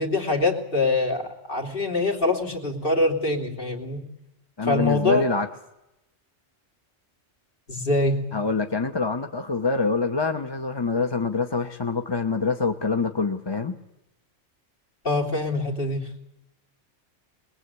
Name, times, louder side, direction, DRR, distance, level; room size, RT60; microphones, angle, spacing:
voice 1, 0.0-4.1 4.6-5.2 7.7-8.2 15.0-16.1, left 2 dB, 40° left, 2 dB, 3.1 m, -24 dB
voice 2, 4.6-5.5 8.3-13.8, left 4 dB, 20° left, 6 dB, 0.9 m, -25 dB
25.0 x 20.5 x 8.2 m, 0.89 s
omnidirectional pair, 1.4 m